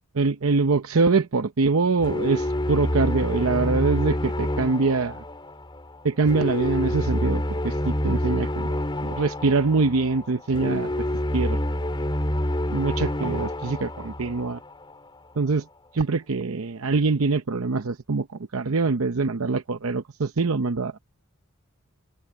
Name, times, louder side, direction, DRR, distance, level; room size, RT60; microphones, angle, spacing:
voice 1, 0.1-5.2 6.0-8.7 9.0-10.9 11.3-11.6 12.7-14.6 15.4-15.6 15.9-18.3 18.5-20.9, right 4 dB, 75° right, 0.8 m, -24 dB
sound 1, 2.0-15.1, left 1 dB, 25° left, 2.7 m, -28 dB
open air
head